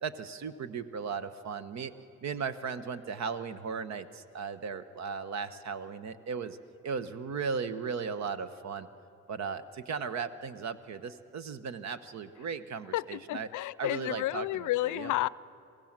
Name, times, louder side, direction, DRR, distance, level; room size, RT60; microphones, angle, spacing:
voice 1, 0.0-1.9 2.2-6.6 6.8-8.9 9.3-13.5 13.8-15.1, right 5 dB, 65° right, 13 dB, 1.1 m, -36 dB
voice 2, 12.9-15.3, left 16 dB, 75° left, 20 dB, 0.5 m, -31 dB
27.0 x 17.5 x 7.5 m, 2.5 s
cardioid pair, 90°, 30 cm